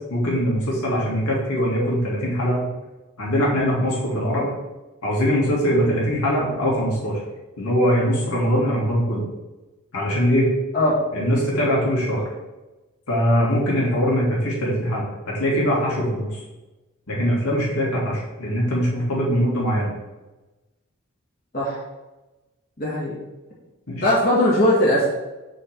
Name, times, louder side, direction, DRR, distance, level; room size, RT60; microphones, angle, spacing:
voice 1, 0.1-2.7 3.2-4.6 5.0-7.2 7.6-9.3 9.9-10.5 11.1-12.2 13.1-16.4 17.1-19.9 23.9-24.1, equal, 85° left, -4 dB, 2.3 m, -22 dB
voice 2, 22.8-23.2 24.0-25.1, left 1 dB, 40° left, -6 dB, 1.5 m, -19 dB
6.2 x 3.4 x 5.8 m, 1.1 s
head